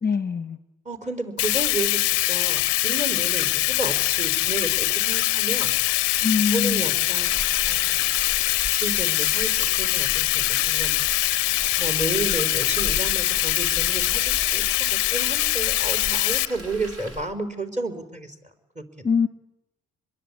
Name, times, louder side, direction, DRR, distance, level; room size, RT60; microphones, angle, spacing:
voice 1, 0.0-0.6 6.2-6.8 19.0-19.3, left 6 dB, 20° left, 11 dB, 1.3 m, -23 dB
voice 2, 0.8-5.7 6.5-7.4 7.7-8.0 8.7-11.1 11.8-18.3 18.7-19.1, right 2 dB, 15° right, 4 dB, 4.7 m, -32 dB
Bathtub (filling or washing), 1.4-16.5, left 19 dB, 65° left, 0.8 m, -23 dB
Frying (food), 7.0-17.3, right 1 dB, 35° right, 4.3 m, -37 dB
26.0 x 22.0 x 8.6 m, 0.96 s
hypercardioid pair, 50°, 44 cm